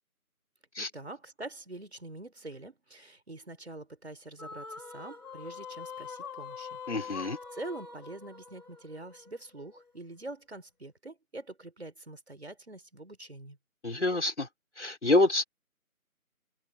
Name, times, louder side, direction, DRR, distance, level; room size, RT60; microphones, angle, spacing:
voice 1, 0.8-6.8 7.1-7.2 7.5-13.6, right 2 dB, 45° right, 5.1 m, -45 dB
sound 1, 4.4-9.8, left 6 dB, 85° left, 4.5 m, -44 dB
voice 2, 6.9-7.4 13.8-14.5 14.8-15.4, left 2 dB, 50° left, 4.4 m, -27 dB
figure-of-eight pair, 180°, 43 cm